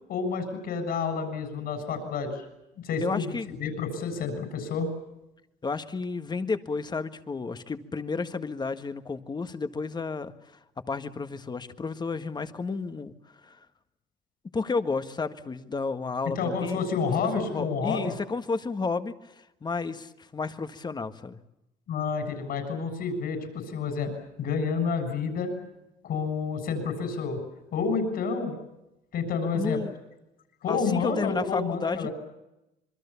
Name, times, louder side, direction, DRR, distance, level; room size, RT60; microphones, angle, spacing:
voice 1, 0.1-2.5 2.8-4.9 16.4-18.1 21.9-24.1 24.4-25.5 26.0-27.4 27.7-28.6 29.1-29.8 30.6-32.1, left 5 dB, 65° left, 8 dB, 7.3 m, -29 dB
voice 2, 3.0-3.5 5.6-10.6 10.9-13.1 13.4-13.6 14.5-21.4 29.5-30.0 30.7-32.1, left 4 dB, 25° left, 10 dB, 1.7 m, -32 dB
26.5 x 23.0 x 7.1 m, 0.90 s
cardioid pair, 110°, 17 cm